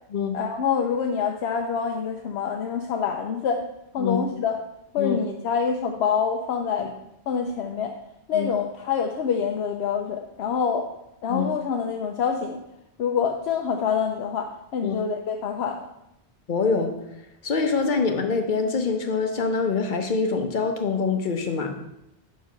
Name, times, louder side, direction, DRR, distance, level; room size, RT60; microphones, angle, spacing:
voice 1, 0.3-3.6 3.9-4.6 4.9-6.9 7.3-7.9 8.3-10.9 11.2-12.6 13.0-15.9, left 6 dB, 75° left, 3 dB, 0.9 m, -26 dB
voice 2, 16.5-16.9 17.4-21.8, left 5 dB, 50° left, 5 dB, 0.9 m, -25 dB
6.1 x 4.8 x 5.6 m, 0.86 s
omnidirectional pair, 1.1 m